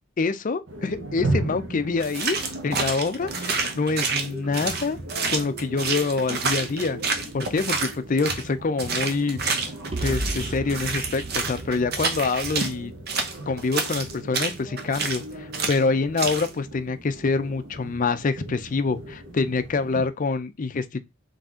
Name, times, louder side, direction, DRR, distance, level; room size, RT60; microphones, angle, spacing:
voice 1, 0.2-2.4 2.6-5.0 5.3-7.0 7.3-9.4 10.0-12.9 13.5-21.0, left 4 dB, 40° left, 0.5 m, -26 dB
sound 1, 0.7-20.1, right 1 dB, 75° right, 1.2 m, -37 dB
sound 2, 2.0-8.5 8.8-12.7 13.1-15.2 15.5-15.8 16.2-16.5, right 4 dB, 55° right, 0.9 m, -28 dB
sound 3, 9.9-13.8, right 1 dB, 30° right, 0.5 m, -34 dB
4.0 x 3.4 x 3.6 m
head